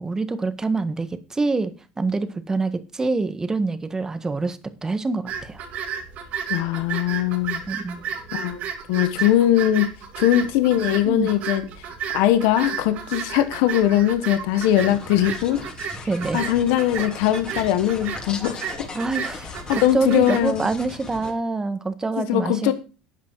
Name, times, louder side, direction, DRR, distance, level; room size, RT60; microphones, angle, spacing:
voice 1, 0.0-5.6 7.7-8.0 11.0-11.3 16.1-16.4 18.9-22.7, right 3 dB, 20° right, 1.7 m, -26 dB
sound 1, 5.3-20.5, right 7 dB, 60° right, 2.7 m, -33 dB
voice 2, 6.5-7.6 8.3-8.6 8.9-9.9 10.2-11.6 12.1-15.6 16.0-16.1 16.3-18.6 19.7-20.6 22.2-22.7, left 12 dB, 75° left, 1.2 m, -20 dB
sound 2, 14.7-21.3, left 3 dB, 30° left, 3.7 m, -38 dB
12.5 x 8.3 x 4.7 m
supercardioid pair, 85°, 3 cm